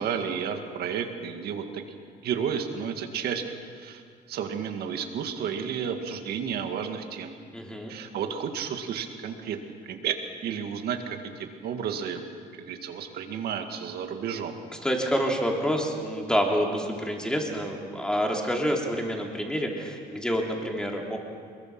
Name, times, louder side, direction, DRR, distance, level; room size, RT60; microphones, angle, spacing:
voice 1, 0.0-1.8 2.2-4.0 4.3-7.4 7.9-9.6 9.8-10.2 10.4-12.2 12.6-14.6, right 7 dB, 70° right, 5 dB, 2.1 m, -32 dB
voice 2, 7.5-7.9 14.8-21.2, equal, 5° left, 0 dB, 3.3 m, -27 dB
22.0 x 22.0 x 6.1 m, 2.2 s
cardioid pair, 110°, 17 cm